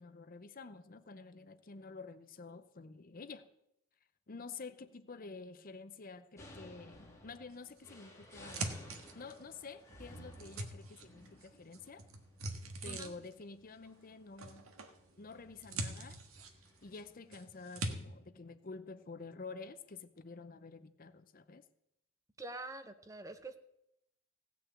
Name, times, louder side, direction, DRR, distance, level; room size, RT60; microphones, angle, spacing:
voice 1, 0.0-3.5 4.3-8.8 9.1-12.0 12.8-14.7 15.2-16.2 16.8-21.6, left 4 dB, 40° left, 13 dB, 0.6 m, -49 dB
sound 1, 6.4-17.1, left 1 dB, 15° left, 2.2 m, -57 dB
sound 2, 7.8-9.6 10.1-11.5 11.7-13.4 14.4-15.0 15.3-17.0 17.3-17.9, right 2 dB, 80° right, 1.5 m, -43 dB
voice 2, 22.4-23.6, right 2 dB, 15° right, 9 dB, 0.7 m, -46 dB
16.5 x 6.1 x 8.3 m, 0.83 s
head